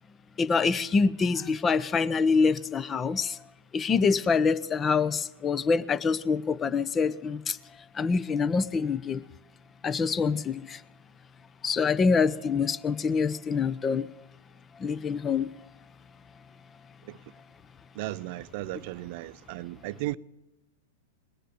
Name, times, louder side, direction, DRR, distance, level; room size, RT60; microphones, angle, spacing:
voice 1, 0.4-3.4 3.7-7.6 7.9-9.2 9.8-10.8 11.6-14.1 14.8-15.5, left 5 dB, 20° left, 0.8 m, -25 dB
voice 2, 17.9-20.2, right 17 dB, 50° right, 0.6 m, -35 dB
20.0 x 10.0 x 6.8 m
hypercardioid pair, 100°, 0 cm